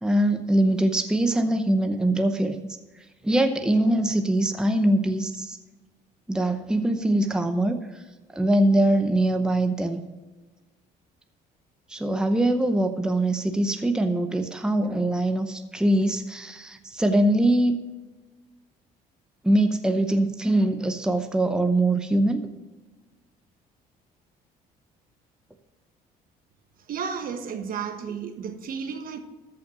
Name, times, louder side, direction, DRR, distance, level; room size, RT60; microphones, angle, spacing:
voice 1, 0.0-2.6 3.2-5.6 6.3-8.0 8.3-10.0 11.9-17.8 19.4-22.5, right 1 dB, 5° right, 7 dB, 0.8 m, -23 dB
voice 2, 26.9-29.2, right 6 dB, 55° right, 7 dB, 1.3 m, -32 dB
13.5 x 5.8 x 6.2 m, 1.2 s
cardioid pair, 110°, 17 cm